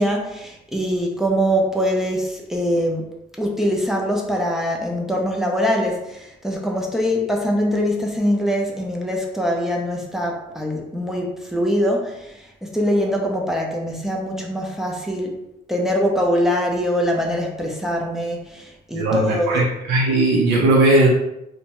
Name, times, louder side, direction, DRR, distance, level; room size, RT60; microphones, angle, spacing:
voice 1, 0.0-3.1 3.4-15.4 15.7-19.6, equal, ahead, -1 dB, 0.5 m, -23 dB
voice 2, 18.9-21.1, right 2 dB, 85° right, -4 dB, 0.7 m, -17 dB
2.6 x 2.2 x 2.9 m, 0.85 s
cardioid pair, 110°, 17 cm